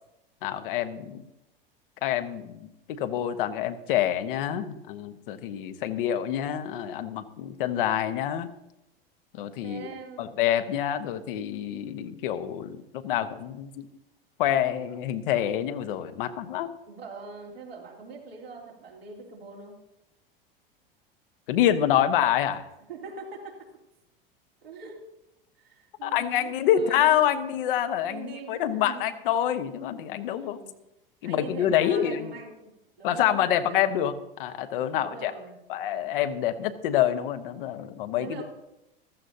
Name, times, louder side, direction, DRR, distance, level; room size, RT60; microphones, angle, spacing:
voice 1, 0.4-1.2 2.0-8.5 9.3-9.9 10.2-13.9 14.4-16.7 21.5-22.6 26.0-30.6 31.2-32.4 33.0-34.1 34.4-35.3 35.7-38.4, left 10 dB, 65° left, 9 dB, 1.1 m, -27 dB
voice 2, 9.6-10.4 16.9-19.8 22.9-23.6 24.6-25.0 25.6-27.3 27.6-27.7 28.1-29.1 30.3-30.7 31.2-32.7 33.0-33.8 34.9-35.6 38.2-38.4, right 4 dB, 80° right, -2 dB, 3.2 m, -42 dB
15.0 x 14.0 x 2.8 m, 0.90 s
hypercardioid pair, 85°, 29 cm